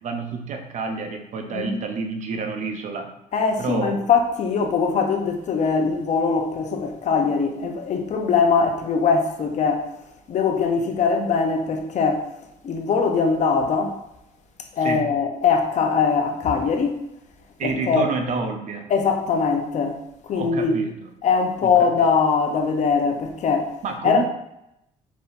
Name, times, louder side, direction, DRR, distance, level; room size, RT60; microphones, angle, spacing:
voice 1, 0.0-3.1 3.6-4.0 14.8-15.1 17.6-18.9 20.3-21.1 21.6-21.7 22.0-22.1 23.8-24.3, right 4 dB, 55° right, 0.7 m, -29 dB
voice 2, 3.3-9.9 10.3-12.3 12.6-14.0 14.8-17.0 17.6-18.1 18.9-20.0 20.3-20.8 21.2-23.7 24.0-24.2, left 5 dB, 55° left, 0.7 m, -21 dB
4.3 x 3.5 x 2.6 m
cardioid pair, 95°, 15 cm